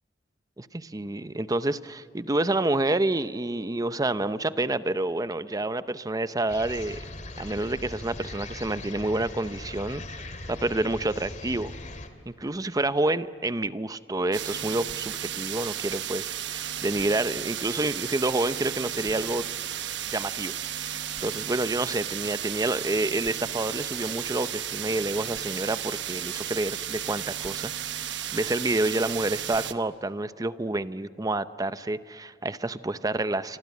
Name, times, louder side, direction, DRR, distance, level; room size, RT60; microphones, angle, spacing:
voice 1, 0.6-7.0 7.4-10.0 10.5-11.7 12.3-19.5 20.1-28.1 28.3-33.6, right 2 dB, 20° right, 14 dB, 0.7 m, -28 dB
sound 1, 6.5-12.1, left 2 dB, 40° left, 2.3 m, -40 dB
sound 2, 14.3-29.7, right 10 dB, 70° right, 1.1 m, -34 dB
27.5 x 25.0 x 8.4 m, 2.4 s
head